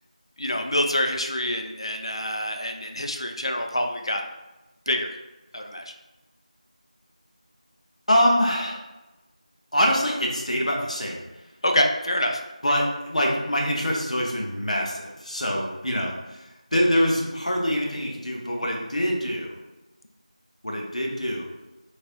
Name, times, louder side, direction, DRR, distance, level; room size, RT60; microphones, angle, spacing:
voice 1, 0.4-4.2 4.9-5.2 5.5-5.8 11.6-12.4, left 1 dB, 45° left, 3 dB, 0.4 m, -26 dB
voice 2, 8.1-8.8 9.7-11.2 12.6-19.5 20.6-21.5, equal, 60° left, -1 dB, 0.9 m, -24 dB
4.0 x 3.3 x 2.5 m, 1.1 s
figure-of-eight pair, 175°, 4 cm